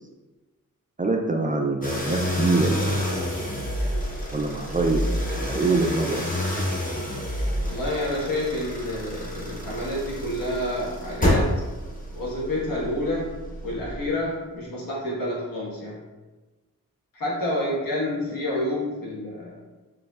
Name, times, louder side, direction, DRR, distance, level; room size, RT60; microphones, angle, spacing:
voice 1, 1.0-3.3 4.3-6.2, right 3 dB, 25° right, 2 dB, 0.4 m, -25 dB
sound 1, 1.8-14.2, equal, 25° left, 0.9 m, -29 dB
voice 2, 7.6-11.5 12.1-13.3 13.6-16.0 17.1-19.5, left 1 dB, 75° left, -6 dB, 1.5 m, -28 dB
4.8 x 3.2 x 2.4 m, 1.2 s
wide cardioid pair, 90°, 34 cm